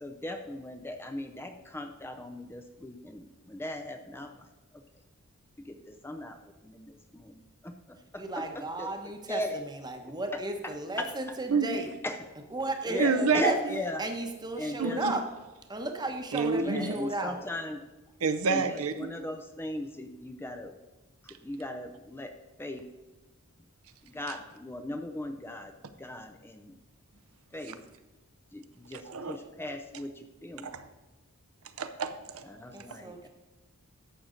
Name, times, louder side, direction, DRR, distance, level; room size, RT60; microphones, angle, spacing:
voice 1, 0.0-4.3 5.7-6.4 6.6-7.7 8.1-8.2 8.8-8.9 9.3-9.5 12.0-12.1 12.9-14.0 14.6-15.0 16.6-17.8 18.5-18.6 19.0-20.7 21.4-22.3 22.6-22.8 24.1-25.7 26.0-26.7 27.5-27.8 28.5-30.7 32.5-33.3, left 1 dB, 10° left, 6 dB, 0.4 m, -37 dB
voice 2, 8.1-11.9 12.5-15.4 15.7-17.5 32.7-33.3, right 2 dB, 20° right, 5 dB, 0.9 m, -35 dB
voice 3, 13.0-13.5 14.8-14.9 16.3-16.9 18.2-19.1 27.7-27.8 29.0-29.4 30.6-30.9 31.8-32.4, right 5 dB, 70° right, 10 dB, 0.6 m, -28 dB
11.5 x 7.5 x 3.8 m, 1.1 s
head